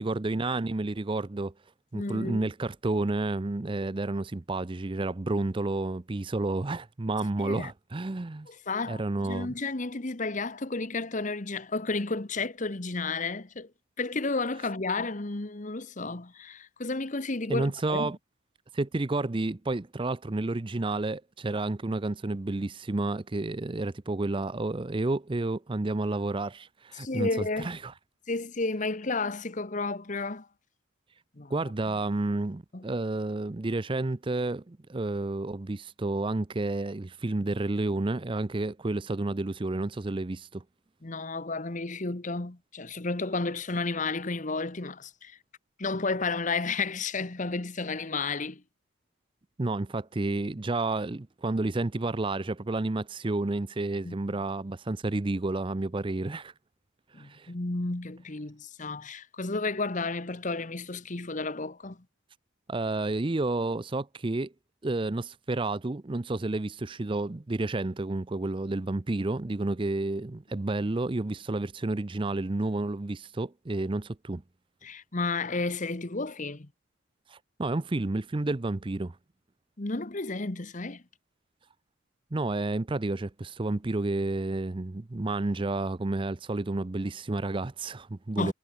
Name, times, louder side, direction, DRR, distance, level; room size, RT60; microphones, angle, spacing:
voice 1, 0.0-1.5 1.9-8.5 8.9-9.5 17.5-18.2 18.7-27.9 31.5-40.6 49.6-56.5 57.2-57.5 62.7-64.5 64.8-74.4 77.3-79.2 82.3-88.5, right 2 dB, 25° right, 0.5 m, -30 dB
voice 2, 1.9-2.5 7.4-7.7 8.5-13.7 14.0-18.1 26.9-27.7 28.3-30.5 31.4-31.5 32.7-32.8 41.0-45.4 45.8-48.6 54.0-54.1 57.1-62.0 74.8-76.7 79.8-81.0 88.4-88.5, left 3 dB, 35° left, 1.1 m, -32 dB
head